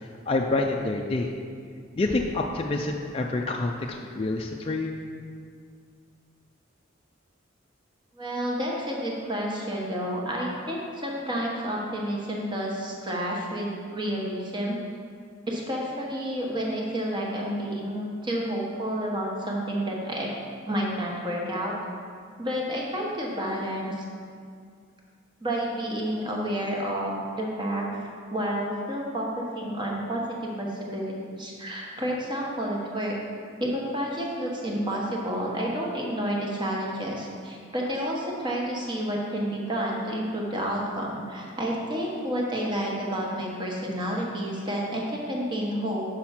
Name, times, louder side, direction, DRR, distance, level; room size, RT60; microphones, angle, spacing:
voice 1, 0.3-1.3 2.0-5.0, left 2 dB, 30° left, 0 dB, 0.3 m, -27 dB
voice 2, 8.1-14.8 15.5-20.3 20.7-21.7 22.4-23.9 25.4-33.1 33.6-46.0, equal, 25° right, -2 dB, 1.2 m, -30 dB
6.0 x 5.6 x 5.8 m, 2.2 s
head